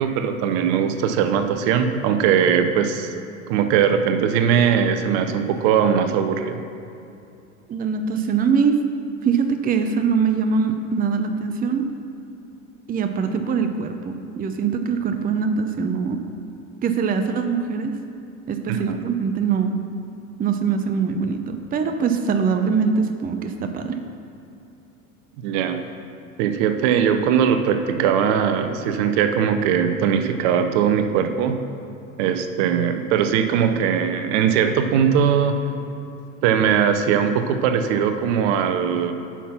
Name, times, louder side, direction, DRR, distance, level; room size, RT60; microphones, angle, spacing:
voice 1, 0.0-3.1 3.5-6.6 18.7-19.0 25.4-25.8 26.4-31.6 32.2-35.6 36.4-39.1, right 7 dB, 55° right, 8 dB, 0.8 m, -20 dB
voice 2, 7.7-8.8 9.2-11.9 12.9-16.2 16.8-18.0 18.5-19.7 20.4-24.0, right 6 dB, 20° right, 7 dB, 0.6 m, -22 dB
8.3 x 5.9 x 5.8 m, 2.7 s
hypercardioid pair, 75°, 41 cm